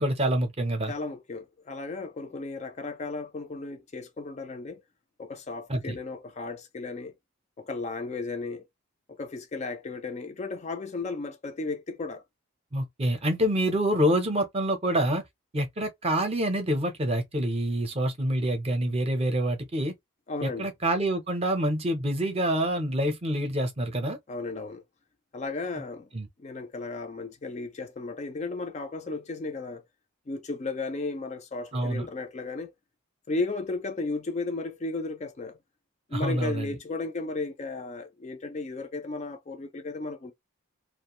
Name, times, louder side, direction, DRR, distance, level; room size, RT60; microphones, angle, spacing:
voice 1, 0.0-0.9 5.7-6.0 12.7-15.2 15.5-19.9 20.4-24.2 26.1-26.3 31.7-32.1 36.1-36.7, right 1 dB, 30° right, 0.6 m, -27 dB
voice 2, 0.9-4.8 5.2-7.1 7.6-8.7 9.1-12.2 20.3-20.7 24.3-24.8 25.3-26.1 26.4-29.8 30.3-32.7 33.3-35.6 36.1-40.3, left 3 dB, 30° left, 0.4 m, -34 dB
2.4 x 2.1 x 2.9 m
head